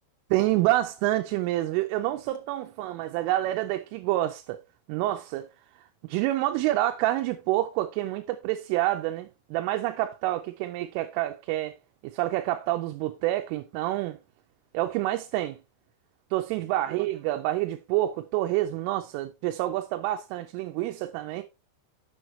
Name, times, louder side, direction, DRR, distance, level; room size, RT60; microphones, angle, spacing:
voice 1, 0.3-4.6 4.9-5.5 6.0-11.7 12.0-14.2 14.7-15.6 16.3-21.4, right 15 dB, 90° right, 3.2 m, -28 dB
8.0 x 7.1 x 3.1 m
omnidirectional pair, 5.6 m